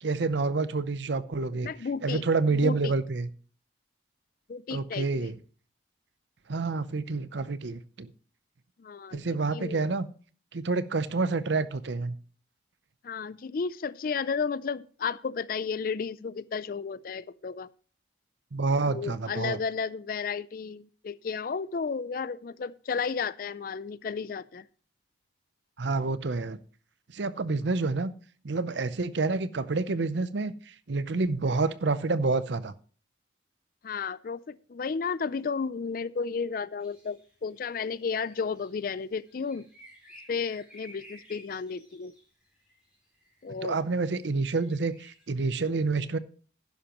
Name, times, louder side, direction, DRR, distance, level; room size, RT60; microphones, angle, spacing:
voice 1, 0.0-1.7 2.0-3.3 4.7-5.4 6.5-8.1 9.1-10.1 10.5-12.2 18.5-19.6 25.8-26.6 27.1-28.1 28.4-30.5 30.9-32.7 43.6-46.2, right 3 dB, 65° right, 0.6 m, -28 dB
voice 2, 1.6-2.2 2.5-2.9 4.5-5.3 8.8-9.2 9.5-9.8 13.0-17.7 18.9-24.7 33.8-39.7 40.3-42.1 43.4-43.8, left 5 dB, 45° left, 0.4 m, -33 dB
sound 1, 36.8-45.2, equal, 5° right, 3.9 m, -56 dB
11.5 x 10.5 x 3.0 m
head